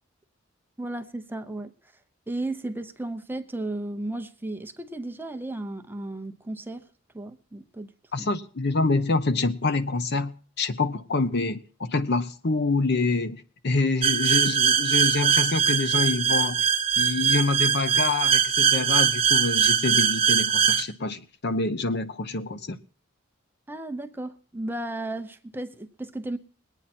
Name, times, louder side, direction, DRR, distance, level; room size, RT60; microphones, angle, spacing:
voice 1, 0.8-1.7 2.3-6.9 7.1-7.9 8.2-8.3 23.7-26.4, right 2 dB, 10° right, 0.7 m, -34 dB
voice 2, 8.1-10.3 10.6-16.7 17.0-22.8, left 3 dB, 55° left, 0.8 m, -26 dB
sound 1, 14.0-20.8, right 7 dB, 30° right, 1.1 m, -22 dB
21.0 x 9.1 x 4.3 m
head